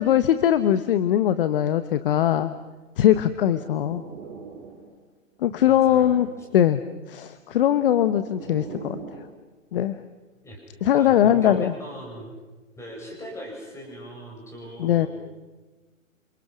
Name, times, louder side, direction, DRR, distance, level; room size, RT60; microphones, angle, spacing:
voice 1, 0.0-2.5 3.0-4.0 5.4-6.3 6.5-6.8 7.1-9.0 9.7-10.0 10.8-11.7 14.8-15.1, left 11 dB, 40° left, 12 dB, 1.2 m, -20 dB
sound 1, 3.2-5.0 5.4-6.5 7.4-9.3, right 5 dB, 25° right, 6.0 m, -42 dB
voice 2, 5.7-6.2 10.4-10.6 10.9-12.3 12.8-15.1, equal, 5° left, -1 dB, 7.7 m, -39 dB
28.5 x 28.0 x 6.2 m, 1.2 s
hypercardioid pair, 145°, 40 cm